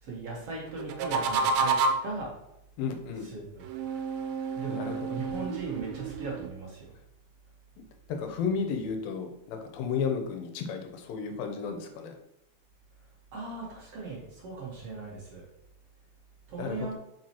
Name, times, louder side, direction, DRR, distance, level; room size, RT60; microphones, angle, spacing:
voice 1, 0.0-1.8 2.0-2.4 3.2-3.6 4.6-6.9 13.3-15.5 16.5-16.9, right 3 dB, 55° right, -3 dB, 2.0 m, -38 dB
sound 1, 0.8-2.2 3.6-6.5, right 4 dB, 85° right, 2.4 m, -30 dB
voice 2, 2.8-3.3 4.7-5.0 8.1-12.2 16.6-16.9, left 6 dB, 85° left, 5 dB, 2.6 m, -33 dB
7.6 x 5.6 x 2.9 m, 0.83 s
omnidirectional pair, 3.9 m